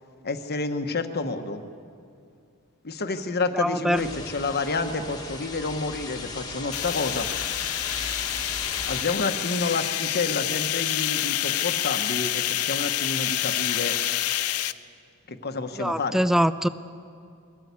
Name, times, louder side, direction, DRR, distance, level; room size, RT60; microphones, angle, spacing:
voice 1, 0.2-1.6 2.8-7.3 8.9-14.0 15.3-16.2, left 3 dB, 45° left, 7 dB, 1.2 m, -29 dB
voice 2, 3.5-4.1 15.8-16.7, equal, ahead, 14 dB, 0.5 m, -23 dB
sound 1, 3.9-9.0, left 3 dB, 20° left, 1.6 m, -37 dB
sound 2, 6.7-14.7, left 13 dB, 80° left, 0.6 m, -27 dB
22.5 x 17.0 x 8.4 m, 2.4 s
head